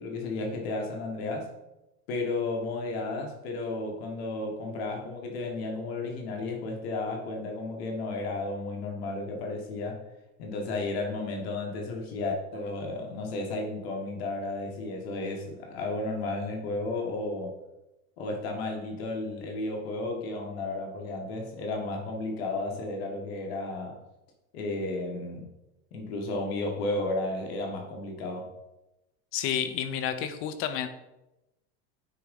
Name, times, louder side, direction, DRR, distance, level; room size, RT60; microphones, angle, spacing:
voice 1, 0.0-1.5 2.1-10.0 10.4-17.5 18.2-24.0 24.5-25.5 25.9-28.5, left 2 dB, 75° left, 1 dB, 1.6 m, -33 dB
voice 2, 29.3-30.9, left 9 dB, 45° left, 10 dB, 0.8 m, -30 dB
9.3 x 3.7 x 5.3 m, 0.95 s
supercardioid pair, 155°, 31 cm